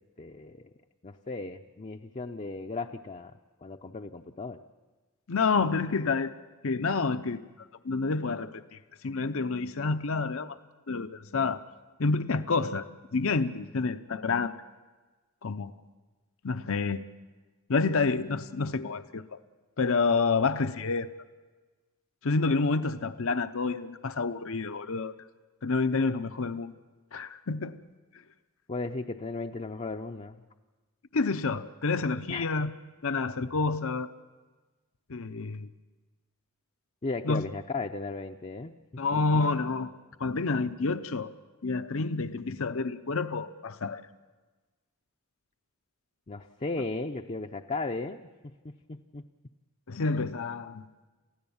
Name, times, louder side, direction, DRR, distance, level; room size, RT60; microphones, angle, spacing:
voice 1, 0.2-0.6 1.0-3.3 3.6-4.6 28.7-30.4 32.3-32.6 37.0-38.7 39.1-39.4 46.3-48.2 48.6-49.2, left 3 dB, 30° left, 4 dB, 0.6 m, -36 dB
voice 2, 5.3-6.3 6.6-7.4 7.8-8.8 9.0-10.6 10.9-11.6 12.0-14.5 15.4-15.7 16.4-17.0 17.7-19.4 19.8-21.1 22.2-25.1 25.6-26.7 27.1-27.8 31.1-32.7 33.0-34.1 35.1-35.7 37.2-37.4 39.0-39.9 40.2-41.3 41.6-44.0 49.9-50.9, left 4 dB, 65° left, 11 dB, 0.7 m, -28 dB
28.5 x 16.0 x 7.1 m, 1.3 s
head